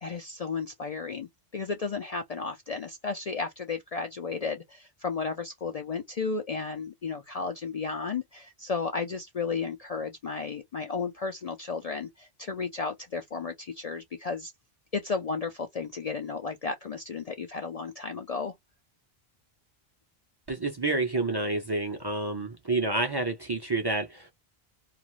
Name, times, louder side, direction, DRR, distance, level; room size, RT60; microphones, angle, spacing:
voice 1, 0.0-14.5 14.9-18.5, left 4 dB, 50° left, 0.5 m, -33 dB
voice 2, 20.5-24.3, right 2 dB, 30° right, 0.5 m, -29 dB
2.4 x 2.4 x 3.0 m
omnidirectional pair, 1.0 m